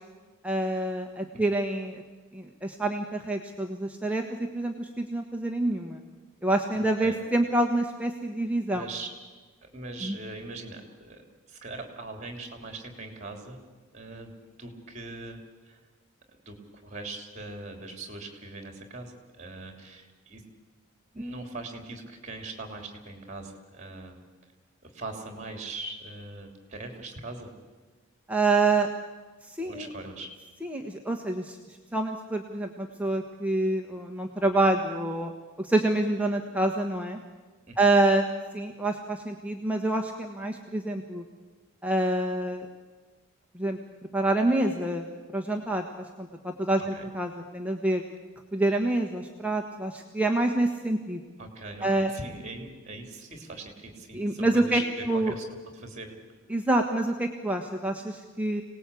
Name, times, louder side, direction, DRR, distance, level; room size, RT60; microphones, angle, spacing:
voice 1, 0.4-2.0 2.3-4.2 4.5-6.0 6.4-8.8 10.0-10.2 28.3-28.9 29.4-29.9 30.6-31.6 31.9-35.3 35.6-37.2 37.8-38.2 38.5-41.2 41.8-42.7 43.5-43.8 44.1-45.1 45.3-45.9 46.2-48.0 48.5-51.2 51.8-52.1 54.1-54.8 55.1-55.3 56.5-58.6, right 2 dB, 5° right, 2 dB, 1.2 m, -27 dB
voice 2, 6.7-7.1 8.7-9.1 9.6-11.2 11.5-13.6 13.9-14.3 14.6-15.4 15.6-15.8 16.3-20.4 21.1-24.1 24.8-27.5 29.6-30.3 37.7-37.8 46.8-47.1 51.4-55.4 55.7-56.1, right 2 dB, 30° right, 4 dB, 3.4 m, -41 dB
26.0 x 19.0 x 8.5 m, 1.3 s
head